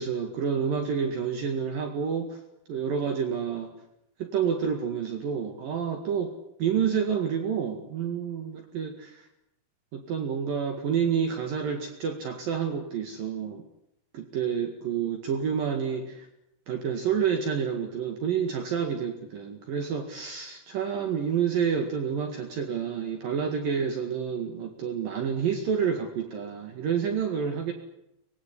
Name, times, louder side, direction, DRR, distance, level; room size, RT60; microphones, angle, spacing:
voice 1, 0.0-2.4 2.7-3.7 4.2-6.3 6.6-9.3 9.9-13.6 14.1-16.3 16.7-27.7, right 7 dB, 65° right, 5 dB, 3.6 m, -29 dB
24.0 x 21.0 x 9.9 m, 0.81 s
omnidirectional pair, 4.5 m